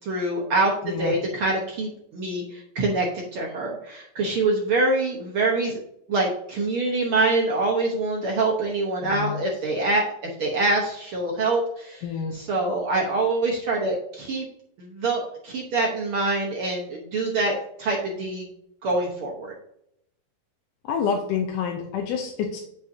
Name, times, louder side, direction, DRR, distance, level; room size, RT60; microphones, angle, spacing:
voice 1, 0.0-3.1 3.3-5.8 6.1-10.1 10.4-12.0 12.3-14.4 14.8-18.5 18.8-19.5, right 2 dB, 75° right, -1 dB, 1.2 m, -25 dB
voice 2, 9.0-9.4 12.0-12.4 20.8-22.6, left 6 dB, 75° left, 2 dB, 2.2 m, -28 dB
8.1 x 6.4 x 2.7 m, 0.74 s
omnidirectional pair, 3.9 m